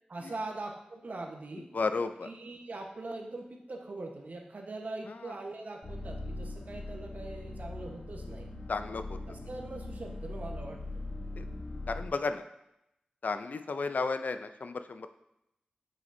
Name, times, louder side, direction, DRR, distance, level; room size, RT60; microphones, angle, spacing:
voice 1, 0.1-1.7 2.2-8.5 9.2-11.0, right 2 dB, 65° right, 2 dB, 1.1 m, -42 dB
voice 2, 1.7-2.3 5.1-5.4 8.7-9.2 11.4-11.5 11.9-12.4 13.2-15.1, left 4 dB, 70° left, 9 dB, 0.4 m, -33 dB
sound 1, 5.8-12.1, left 2 dB, 50° left, 1.0 m, -41 dB
7.7 x 6.0 x 2.6 m, 0.84 s
wide cardioid pair, 85°, 3 cm